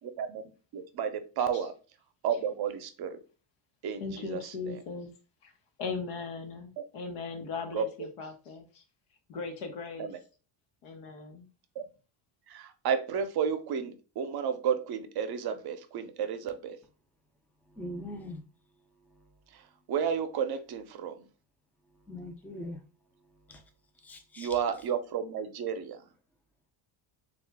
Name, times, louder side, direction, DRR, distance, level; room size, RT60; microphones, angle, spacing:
voice 1, 0.0-0.4 0.7-1.7 2.2-3.2 3.8-4.8 7.7-7.9 10.0-10.2 12.5-16.8 19.5-21.3 24.4-26.0, right 7 dB, 50° right, 0.6 m, -32 dB
voice 2, 4.0-5.1 5.4-5.5 5.8-8.8 9.3-10.1 10.8-11.5, left 4 dB, 90° left, 1.0 m, -38 dB
voice 3, 17.8-18.4 22.1-22.8 23.5-23.6 24.0-24.9, left 1 dB, 5° left, 0.4 m, -41 dB
3.0 x 2.4 x 3.4 m
cardioid pair, 100°, 49 cm